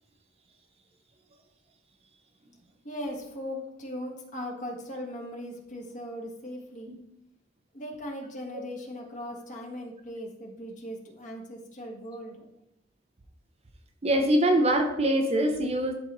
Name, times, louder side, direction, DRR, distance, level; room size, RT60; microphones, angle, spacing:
voice 1, 2.8-6.9 7.7-12.4, equal, 40° left, -1 dB, 1.5 m, -39 dB
voice 2, 14.0-15.9, right 1 dB, 30° right, 5 dB, 0.6 m, -23 dB
11.5 x 4.0 x 3.0 m, 0.86 s
head